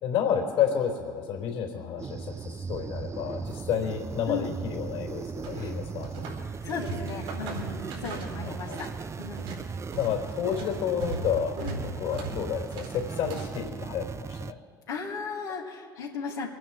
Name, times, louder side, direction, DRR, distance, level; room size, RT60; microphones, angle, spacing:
voice 1, 0.0-6.3 8.4-8.8 10.0-14.6, left 8 dB, 65° left, 1 dB, 3.7 m, -30 dB
sound 1, 2.0-14.5, right 5 dB, 25° right, 0.5 m, -37 dB
sound 2, 5.4-6.4 6.7-8.9 9.2-13.6, right 3 dB, 75° right, 4.3 m, -39 dB
voice 2, 6.6-8.9 9.2-9.6 11.6-11.8 14.9-16.5, left 4 dB, 85° left, -8 dB, 2.3 m, -36 dB
25.5 x 9.7 x 4.7 m, 2.1 s
hypercardioid pair, 60°, 11 cm